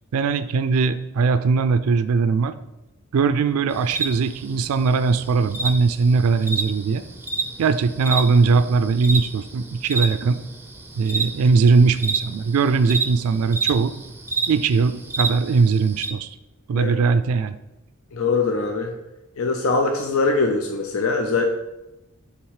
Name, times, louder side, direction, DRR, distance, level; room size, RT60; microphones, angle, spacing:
voice 1, 0.1-2.5 3.1-7.0 7.6-10.4 11.0-13.9 14.5-16.4 16.7-17.6, right 4 dB, 80° right, 12 dB, 0.4 m, -20 dB
sound 1, 3.7-16.1, right 4 dB, 10° right, 0.5 m, -30 dB
voice 2, 18.1-18.9 19.4-21.4, left 3 dB, 70° left, 4 dB, 0.6 m, -22 dB
8.7 x 3.5 x 4.8 m, 0.96 s
head